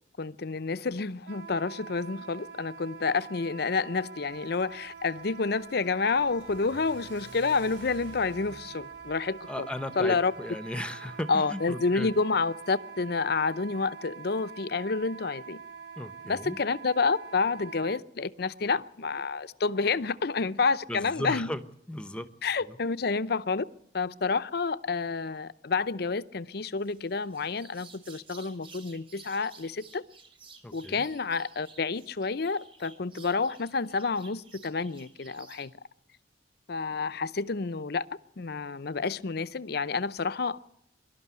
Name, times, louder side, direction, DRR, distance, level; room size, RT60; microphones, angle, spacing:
voice 1, 0.2-9.7 10.0-10.3 11.3-15.6 16.2-21.5 22.4-23.7 23.9-30.0 30.7-35.7 36.7-38.1 38.4-40.6, left 4 dB, 60° left, 0.7 m, -29 dB
Wind instrument woodwind instrument, 1.2-18.0, right 6 dB, 60° right, 1.3 m, -45 dB
Car / Accelerating revving vroom, 4.2-10.4, equal, 80° right, 5.9 m, -53 dB
voice 2, 9.5-12.1 16.0-16.6 20.9-21.6 21.9-22.3 22.7-22.8 30.6-31.0, left 1 dB, 5° left, 0.9 m, -36 dB
sound 1, 26.8-35.7, right 5 dB, 30° right, 2.6 m, -54 dB
23.0 x 12.5 x 9.4 m
head